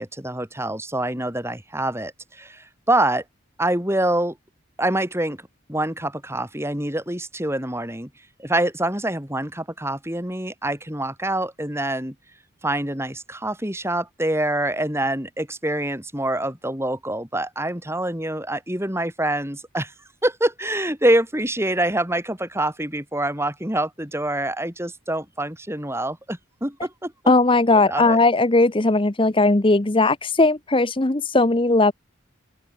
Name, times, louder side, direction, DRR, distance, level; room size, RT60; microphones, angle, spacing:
voice 1, 0.0-3.2 3.6-4.4 4.8-5.4 5.7-8.1 8.4-12.1 12.6-19.9 20.2-27.1 27.7-28.2, right 1 dB, 10° right, 4.7 m, -25 dB
voice 2, 27.3-31.9, left 2 dB, 25° left, 0.8 m, -18 dB
open air
head